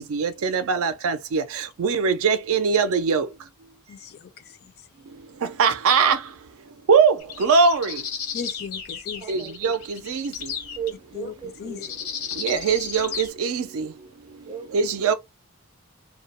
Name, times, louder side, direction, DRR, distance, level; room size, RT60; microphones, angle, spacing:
voice 1, 0.0-3.3 5.4-6.2 6.9-8.0 9.3-10.5 12.4-13.9 14.7-15.1, right 5 dB, 65° right, 0.4 m, -22 dB
voice 2, 3.9-4.5 8.3-9.3 11.1-11.3 11.6-11.8, left 6 dB, 45° left, 0.4 m, -36 dB
sound 1, 7.2-10.9 11.8-13.3, left 7 dB, 80° left, 0.8 m, -34 dB
voice 3, 9.1-9.7 10.8-12.1 14.4-14.9, right 6 dB, 20° right, 0.6 m, -36 dB
2.2 x 2.0 x 2.9 m
head